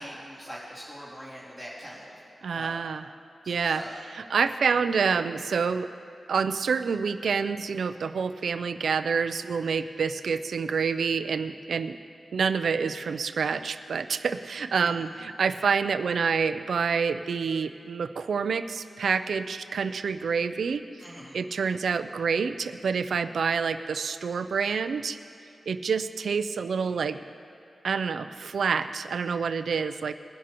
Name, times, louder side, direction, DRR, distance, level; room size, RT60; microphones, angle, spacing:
voice 1, 0.0-2.1 2.5-2.8 3.6-3.9 14.7-15.0 21.0-21.4, equal, 20° left, -12 dB, 3.0 m, -42 dB
voice 2, 2.4-3.0 3.5-3.8 4.1-5.9 6.3-12.0 12.3-20.8 21.3-25.2 25.7-27.2 27.8-30.1, right 5 dB, 85° right, 11 dB, 0.4 m, -27 dB
20.5 x 11.0 x 3.0 m, 2.5 s
wide cardioid pair, 150°, 0 cm